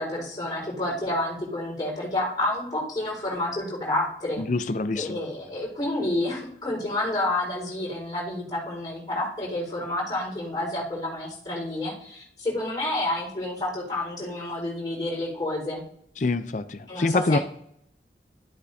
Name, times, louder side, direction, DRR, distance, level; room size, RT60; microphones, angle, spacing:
voice 1, 0.0-4.4 4.9-15.8 16.9-17.4, left 1 dB, 25° left, -5 dB, 4.4 m, -29 dB
voice 2, 4.4-5.2 16.2-17.4, left 3 dB, 45° left, 12 dB, 0.5 m, -25 dB
12.5 x 8.2 x 2.7 m, 0.71 s
head